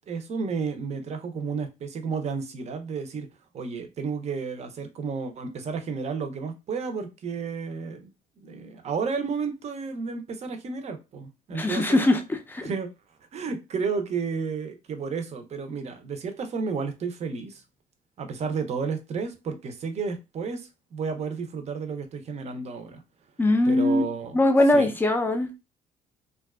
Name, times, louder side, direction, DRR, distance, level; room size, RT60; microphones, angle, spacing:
voice 1, 0.1-3.3 3.5-8.1 8.4-12.0 12.6-12.9 13.3-17.6 18.2-23.0 23.7-24.4 24.7-24.9, right 5 dB, 40° right, 0.6 m, -32 dB
voice 2, 11.5-12.2 12.5-12.7 23.4-24.0 24.3-25.6, left 1 dB, 10° left, 0.4 m, -21 dB
2.5 x 2.2 x 2.3 m
cardioid pair, 110°, 17 cm